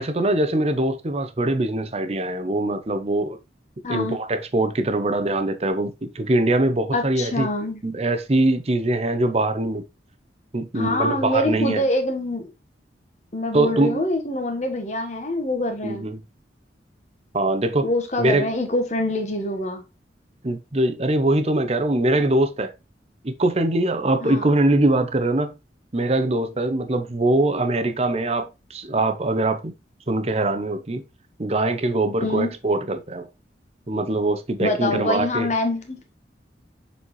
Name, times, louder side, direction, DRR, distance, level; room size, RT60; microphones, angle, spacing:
voice 1, 0.0-3.4 3.9-7.5 7.8-9.8 10.5-11.8 13.5-14.0 15.8-16.2 17.3-17.9 18.2-18.5 20.4-22.7 23.2-25.6 25.9-29.7 30.1-31.0 31.4-33.3 33.9-35.5, right 2 dB, 35° right, 0.7 m, -22 dB
voice 2, 3.8-4.2 6.9-7.8 10.7-12.5 13.3-16.0 17.8-19.8 24.2-24.5 32.2-32.5 34.6-36.0, left 1 dB, 40° left, 1.3 m, -25 dB
7.2 x 4.2 x 3.1 m
head